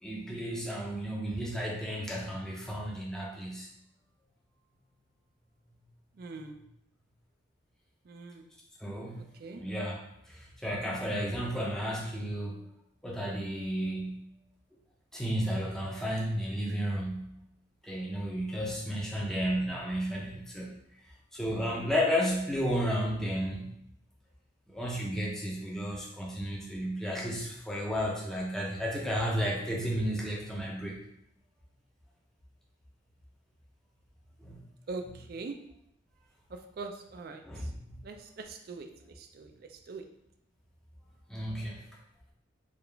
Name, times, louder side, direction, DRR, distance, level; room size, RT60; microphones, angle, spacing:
voice 1, 0.0-3.7 8.8-10.0 10.3-12.6 13.0-14.3 15.1-17.4 17.8-20.7 21.3-23.7 24.7-31.0 34.4-34.6 37.5-37.9 41.3-41.8, equal, 5° left, -3 dB, 0.5 m, -33 dB
voice 2, 6.2-6.6 8.1-8.4 9.2-9.6 34.9-35.6 36.5-37.4 38.0-38.9 39.2-40.0, right 3 dB, 50° right, 6 dB, 0.3 m, -42 dB
3.6 x 2.4 x 3.3 m, 0.76 s
head